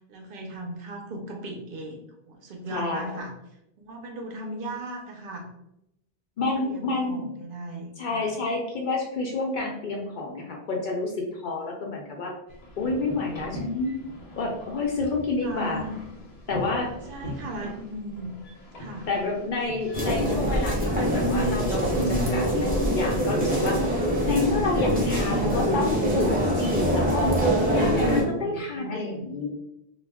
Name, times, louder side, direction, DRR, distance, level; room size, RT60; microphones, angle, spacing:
voice 1, 0.1-2.0 2.3-3.3 3.8-5.5 6.6-8.2 15.2-15.9 17.1-18.3 18.8-19.1 28.3-29.3, right 1 dB, 65° right, 1 dB, 0.7 m, -37 dB
voice 2, 2.7-3.2 6.4-7.3 8.0-12.3 12.8-14.0 14.4-15.9 16.5-16.9 19.1-23.8 24.3-27.3 27.7-29.5, left 3 dB, 60° left, 0 dB, 0.6 m, -29 dB
sound 1, 12.5-22.3, left 1 dB, 75° left, 0.9 m, -42 dB
sound 2, 19.9-28.2, equal, 10° right, 0.5 m, -24 dB
2.3 x 2.0 x 3.3 m, 0.82 s
omnidirectional pair, 1.1 m